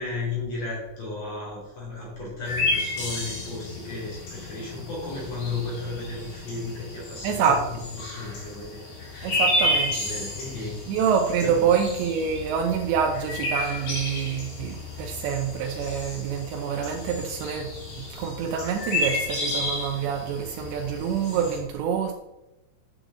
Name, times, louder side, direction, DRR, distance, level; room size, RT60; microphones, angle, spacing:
voice 1, 0.0-9.5 9.9-10.9 11.4-11.7, left 3 dB, 40° left, -5 dB, 3.4 m, -34 dB
sound 1, 2.4-21.6, left 2 dB, 75° left, 5.3 m, -31 dB
voice 2, 7.2-7.7 9.2-10.0 10.9-17.7 18.1-22.1, right 7 dB, 85° right, 2 dB, 2.9 m, -26 dB
9.0 x 7.7 x 3.8 m, 0.95 s
omnidirectional pair, 5.1 m